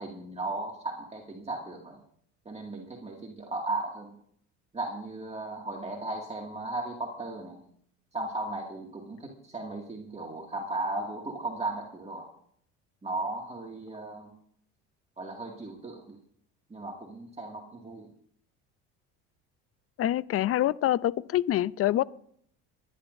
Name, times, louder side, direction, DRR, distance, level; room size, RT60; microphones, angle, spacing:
voice 1, 0.0-2.0 2.5-4.1 4.7-7.6 8.1-12.3 13.0-14.3 15.2-16.2 16.7-18.1, right 2 dB, 20° right, -1 dB, 2.1 m, -36 dB
voice 2, 20.0-22.0, left 13 dB, 40° left, 20 dB, 0.5 m, -26 dB
24.5 x 11.0 x 2.6 m, 0.64 s
supercardioid pair, 90°, 35 cm